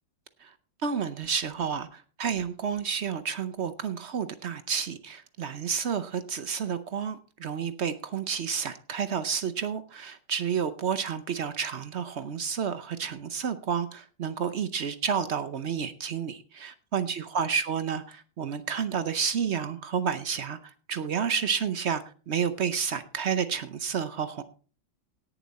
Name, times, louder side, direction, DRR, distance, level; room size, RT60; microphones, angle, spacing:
voice 1, 0.8-24.4, right 7 dB, 70° right, 12 dB, 0.6 m, -30 dB
17.5 x 7.1 x 4.1 m, 0.38 s
omnidirectional pair, 2.1 m